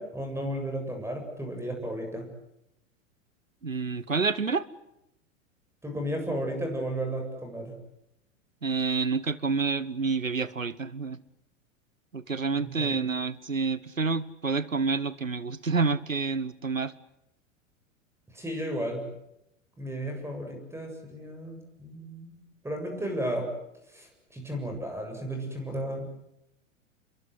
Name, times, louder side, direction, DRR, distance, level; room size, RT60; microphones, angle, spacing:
voice 1, 0.0-2.3 5.8-7.7 12.6-13.0 18.3-19.1 19.8-23.5 23.9-26.1, right 1 dB, 5° right, 4 dB, 7.6 m, -34 dB
voice 2, 3.6-4.7 8.6-11.2 12.1-16.9, right 4 dB, 90° right, 19 dB, 1.1 m, -28 dB
30.0 x 23.0 x 8.1 m, 0.84 s
figure-of-eight pair, 90°, 38 cm